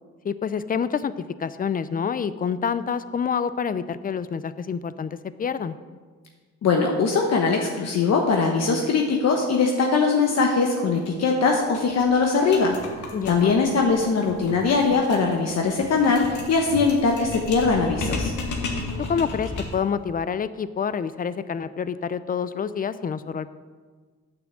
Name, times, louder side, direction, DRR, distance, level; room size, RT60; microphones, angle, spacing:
voice 1, 0.2-5.8 13.1-13.6 19.1-23.5, left 6 dB, 30° left, 14 dB, 0.5 m, -27 dB
voice 2, 6.6-12.8 13.3-18.3, left 4 dB, 60° left, 1 dB, 1.2 m, -21 dB
sound 1, 11.0-11.1 11.4-11.5 11.7-19.9, left 3 dB, 75° left, 2.1 m, -34 dB
8.9 x 6.2 x 7.4 m, 1.5 s
cardioid pair, 90°, 30 cm